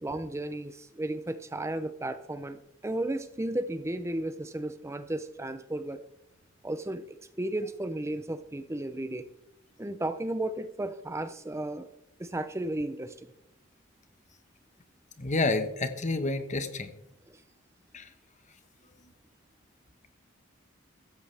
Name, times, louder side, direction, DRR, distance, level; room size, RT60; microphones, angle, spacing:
voice 1, 0.0-6.0 6.6-9.3 9.8-11.9 12.2-13.3 17.3-17.4, right 1 dB, 15° right, 11 dB, 0.5 m, -34 dB
voice 2, 15.2-16.9 17.9-18.0, left 3 dB, 40° left, 9 dB, 1.2 m, -29 dB
15.5 x 13.5 x 3.4 m, 0.83 s
head